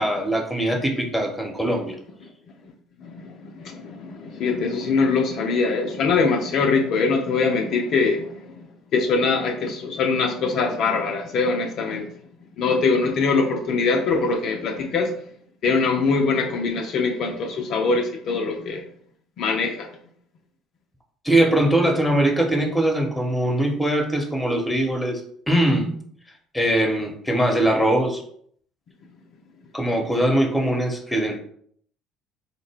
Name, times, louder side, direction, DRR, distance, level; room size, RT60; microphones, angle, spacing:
voice 1, 0.0-2.0 21.2-25.2 25.5-26.0 26.5-28.2 29.7-31.4, right 1 dB, 10° left, 4 dB, 1.0 m, -21 dB
voice 2, 3.6-8.2 8.9-12.1 12.6-15.1 15.6-18.8 19.4-19.9, left 4 dB, 55° left, 2 dB, 0.5 m, -22 dB
3.8 x 2.1 x 3.5 m, 0.62 s
hypercardioid pair, 60°, 0 cm